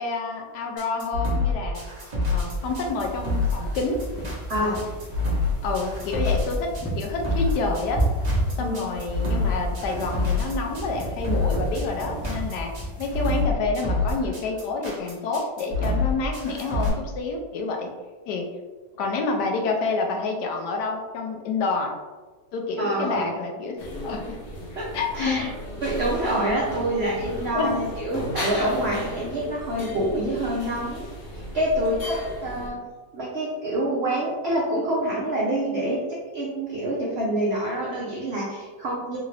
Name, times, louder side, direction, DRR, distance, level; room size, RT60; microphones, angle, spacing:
voice 1, 0.0-1.8 2.3-4.0 4.5-4.8 5.6-6.7 7.0-8.0 8.6-12.7 13.0-17.9 18.3-18.5 19.0-21.9 22.5-24.4 24.9-25.5 27.5-27.8, left 3 dB, 75° left, 2 dB, 1.1 m, -28 dB
sound 1, 0.8-16.9, left 3 dB, 35° right, 0.7 m, -26 dB
sound 2, 2.5-13.4, right 1 dB, 15° left, 0.4 m, -32 dB
voice 2, 8.6-8.9 22.8-23.2 24.8-24.9 25.1-25.5 25.8-31.1 31.3-32.8 33.1-36.0 36.3-39.2, right 1 dB, 75° right, -4 dB, 0.6 m, -26 dB
sound 3, 23.8-32.7, equal, 45° left, 0.8 m, -35 dB
3.7 x 2.4 x 3.2 m, 1.3 s
omnidirectional pair, 1.9 m